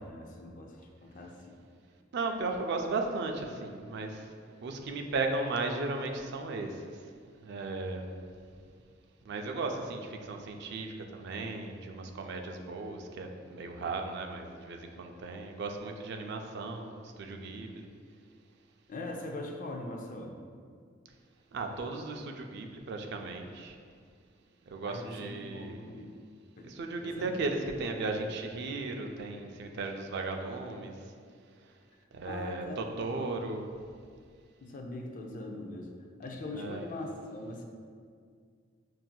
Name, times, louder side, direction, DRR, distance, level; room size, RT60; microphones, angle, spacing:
voice 1, 0.0-1.6 18.9-20.4 24.8-26.1 26.6-26.7 27.0-27.3 28.1-28.3 32.2-33.4 34.6-35.9 36.2-37.6, left 2 dB, 40° left, 1 dB, 0.4 m, -41 dB
voice 2, 2.1-7.1 7.4-8.1 9.3-17.9 21.5-23.8 24.7-26.0 26.6-31.1 32.1-33.7 36.5-36.9, right 3 dB, 60° right, 4 dB, 0.4 m, -36 dB
5.7 x 2.6 x 2.2 m, 2.1 s
head